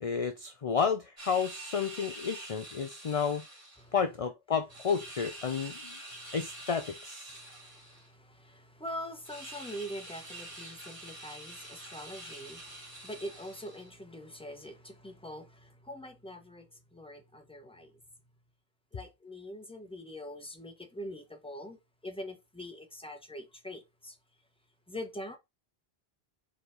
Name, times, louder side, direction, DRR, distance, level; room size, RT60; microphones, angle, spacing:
voice 1, 0.0-3.4 3.9-6.0 6.3-7.4, left 6 dB, 40° left, 0.6 m, -31 dB
sound 1, 1.2-3.8 4.7-8.1 9.2-13.9, right 2 dB, 35° right, 2.8 m, -46 dB
voice 2, 6.0-6.4 7.3-17.9 18.9-21.8 22.0-24.2 24.9-25.4, equal, 5° left, 1.1 m, -44 dB
5.0 x 4.2 x 4.9 m
omnidirectional pair, 1.0 m